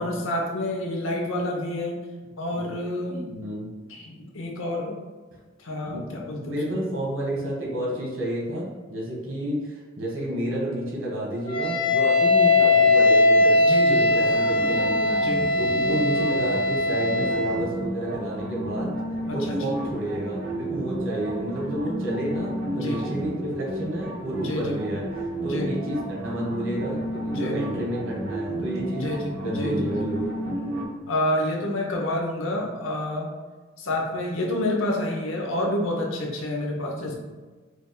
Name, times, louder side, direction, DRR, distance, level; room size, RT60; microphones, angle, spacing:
voice 1, 0.0-2.0 2.4-3.3 3.9-4.9 5.6-6.9 13.6-14.2 15.2-15.5 19.3-19.8 22.7-23.2 24.4-24.8 25.5-25.7 27.3-27.6 28.5-29.9 31.1-33.3 33.8-37.1, left 1 dB, 80° left, 0 dB, 0.9 m, -29 dB
voice 2, 3.3-3.7 5.9-13.6 13.9-15.2 15.6-18.9 19.3-25.0 25.4-29.1 29.4-30.3 37.0-37.1, right 1 dB, 80° right, -4 dB, 1.4 m, -30 dB
Wind instrument woodwind instrument, 11.5-17.6, left 2 dB, 25° left, 0.8 m, -20 dB
sound 1, 14.1-30.8, right 1 dB, 60° right, 1.0 m, -32 dB
4.9 x 3.3 x 2.2 m, 1.3 s
head